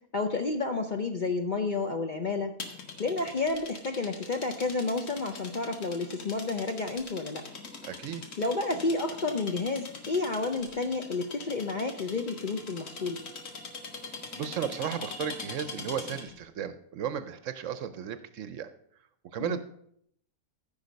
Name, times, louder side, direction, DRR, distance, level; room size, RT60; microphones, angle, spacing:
voice 1, 0.1-2.6 3.0-7.5 8.4-13.2 19.4-19.6, left 3 dB, 45° left, 5 dB, 0.6 m, -30 dB
sound 1, 2.6-16.4, left 4 dB, 85° left, 2.0 m, -42 dB
voice 2, 7.8-8.2 14.4-18.7 19.3-19.6, right 8 dB, 65° right, 12 dB, 0.9 m, -34 dB
14.5 x 5.7 x 5.2 m, 0.70 s
omnidirectional pair, 1.6 m